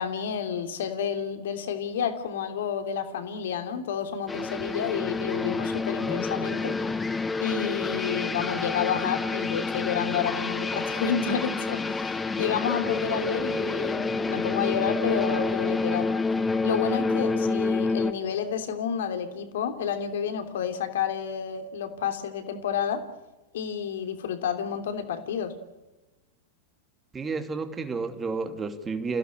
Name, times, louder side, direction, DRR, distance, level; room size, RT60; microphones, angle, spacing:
voice 1, 0.0-6.8 7.4-16.1 16.6-23.1 23.5-25.6, left 7 dB, 60° left, 7 dB, 3.1 m, -30 dB
sound 1, 4.3-18.1, left 3 dB, 15° left, 1.5 m, -28 dB
voice 2, 27.1-29.2, right 4 dB, 15° right, 7 dB, 2.7 m, -31 dB
29.0 x 16.5 x 8.8 m, 1.1 s
figure-of-eight pair, 90°, 0 cm